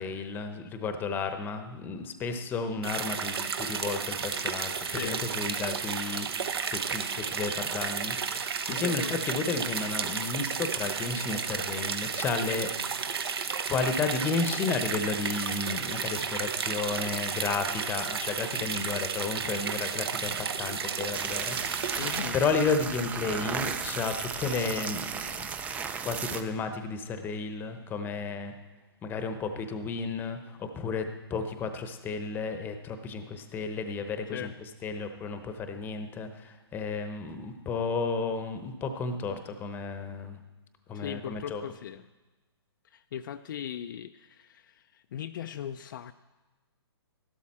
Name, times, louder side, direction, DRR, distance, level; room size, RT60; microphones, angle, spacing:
voice 1, 0.0-8.2 8.7-12.7 13.7-21.9 22.3-25.5 26.0-28.5 29.0-34.5 34.8-40.4 40.9-41.6, left 4 dB, 15° left, 8 dB, 0.9 m, -32 dB
sound 1, 2.8-22.2, right 6 dB, 70° right, 1.1 m, -33 dB
voice 2, 4.9-5.2 8.6-9.3 22.0-22.4 34.3-34.5 40.9-42.1 42.8-46.1, left 10 dB, 50° left, 8 dB, 0.4 m, -38 dB
sound 2, 21.1-26.4, right 6 dB, 10° right, 0.4 m, -35 dB
13.0 x 12.0 x 4.3 m, 1.2 s
hypercardioid pair, 145°, 14 cm